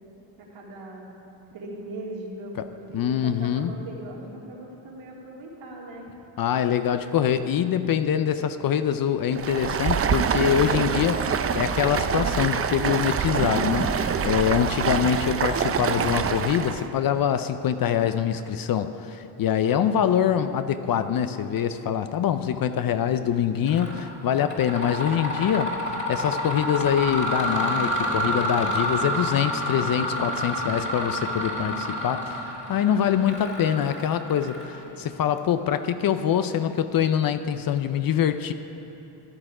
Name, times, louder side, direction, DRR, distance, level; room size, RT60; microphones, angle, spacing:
voice 1, 0.4-1.1 1.5-6.1 30.4-31.2 31.5-31.9, right 1 dB, 65° right, -3 dB, 2.7 m, -40 dB
voice 2, 2.9-3.7 6.4-38.5, left 9 dB, 45° left, 11 dB, 0.6 m, -24 dB
Stream, 9.3-16.9, right 7 dB, 30° right, 0.5 m, -25 dB
Mechanisms, 23.7-24.0 24.4-34.9, equal, 25° left, 2.4 m, -29 dB
13.5 x 10.0 x 4.9 m, 2.9 s
cardioid pair, 90°, 49 cm